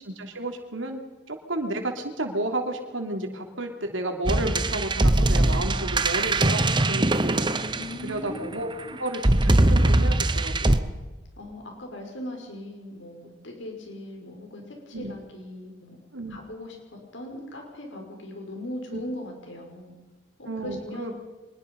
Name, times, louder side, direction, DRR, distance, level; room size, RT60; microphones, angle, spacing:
voice 1, 0.0-7.8 8.0-8.7 9.0-10.9 14.9-15.1 16.1-16.4 18.9-19.0 20.4-21.1, right 1 dB, 90° right, 4 dB, 3.3 m, -32 dB
sound 1, 4.3-8.3 9.1-10.8, right 2 dB, 25° right, 0.9 m, -21 dB
voice 2, 7.7-9.0 11.4-16.0 16.3-19.9 20.4-21.1, left 1 dB, 80° left, 2 dB, 5.5 m, -39 dB
25.0 x 21.5 x 5.5 m, 1.2 s
head